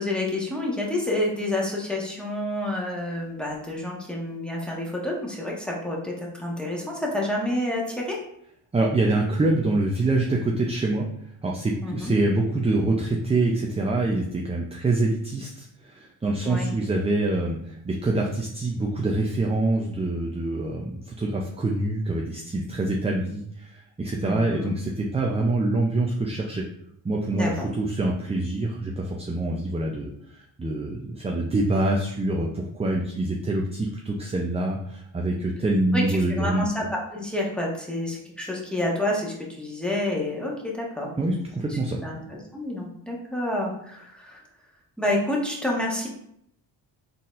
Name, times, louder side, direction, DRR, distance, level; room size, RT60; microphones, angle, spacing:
voice 1, 0.0-8.2 11.8-12.1 16.4-16.7 24.2-24.7 27.3-27.7 35.9-41.1 41.7-44.4 45.0-46.1, left 1 dB, ahead, -3 dB, 1.3 m, -29 dB
voice 2, 8.7-11.1 11.4-26.6 27.0-36.7 41.2-42.0, right 2 dB, 15° right, 0 dB, 0.5 m, -25 dB
4.1 x 3.9 x 2.5 m, 0.72 s
cardioid pair, 75°, 44 cm